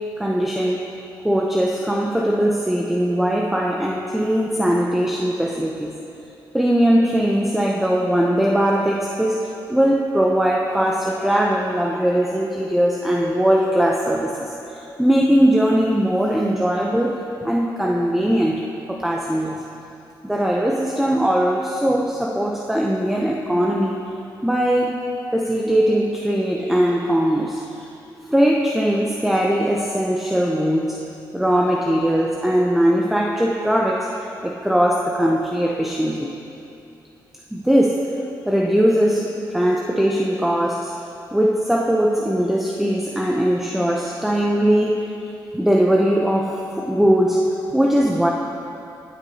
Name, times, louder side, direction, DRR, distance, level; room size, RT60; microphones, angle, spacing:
voice 1, 0.2-0.8 1.2-6.0 6.5-19.6 20.2-24.0 24.4-27.9 28.3-31.0 31.3-34.2 34.4-36.3 37.5-38.1 38.5-41.0 41.3-45.1 45.5-48.3, equal, 5° right, -1 dB, 0.7 m, -20 dB
20.5 x 8.4 x 2.8 m, 2.8 s
cardioid pair, 105°, 8 cm